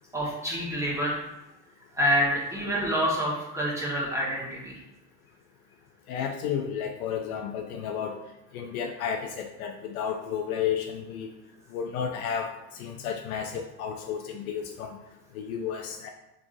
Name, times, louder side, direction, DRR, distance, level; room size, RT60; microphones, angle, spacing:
voice 1, 0.1-1.2 2.0-4.7, equal, 5° right, -5 dB, 1.3 m, -27 dB
voice 2, 6.1-8.2 8.5-11.3 11.7-12.5 12.8-14.9 15.4-16.1, left 8 dB, 60° left, 4 dB, 0.5 m, -32 dB
3.7 x 3.5 x 2.6 m, 0.97 s
figure-of-eight pair, 75°, 50 cm